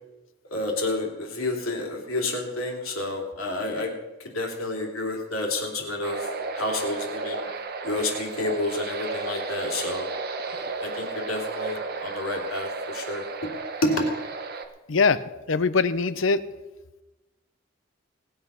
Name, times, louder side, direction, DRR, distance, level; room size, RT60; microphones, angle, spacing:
voice 1, 0.5-3.9 4.3-6.2 6.5-7.4 7.8-10.1 10.5-12.7 12.9-13.3 13.8-14.1, left 2 dB, 90° left, 1 dB, 2.9 m, -29 dB
sound 1, 6.0-14.6, right 3 dB, 50° right, 1.1 m, -33 dB
voice 2, 15.5-16.4, left 4 dB, 65° left, 15 dB, 0.6 m, -21 dB
19.0 x 8.0 x 5.5 m, 1.1 s
head